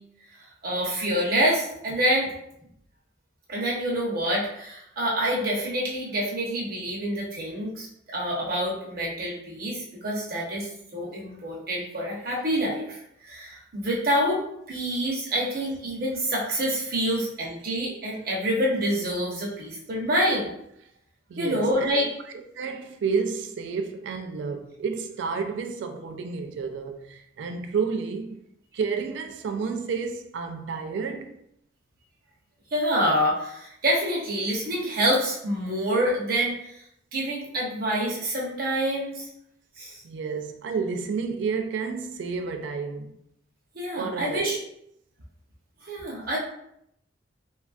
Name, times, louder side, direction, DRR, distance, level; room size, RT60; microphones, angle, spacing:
voice 1, 0.6-2.3 3.5-14.4 14.7-20.5 21.4-22.1 32.7-36.7 37.1-39.3 39.8-40.0 43.7-44.6 45.8-46.4, equal, 55° right, 0.8 m, -27 dB
voice 2, 21.3-21.9 22.5-28.4 28.7-31.4 40.0-43.2 44.0-44.6, right 5 dB, 75° right, 0.3 m, -30 dB
3.2 x 2.3 x 2.4 m
head